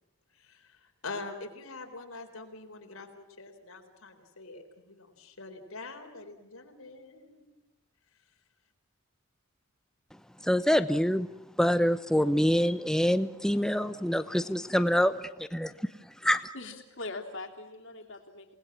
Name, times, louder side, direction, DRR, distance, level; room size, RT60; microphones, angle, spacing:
voice 1, 1.0-7.5, left 3 dB, 90° left, 3.9 m, -44 dB
voice 2, 10.5-11.3 11.6-15.1 15.4-15.7 16.2-16.4, equal, 5° left, 0.8 m, -25 dB
voice 3, 16.5-18.5, left 2 dB, 65° left, 3.3 m, -41 dB
28.5 x 19.5 x 7.5 m
head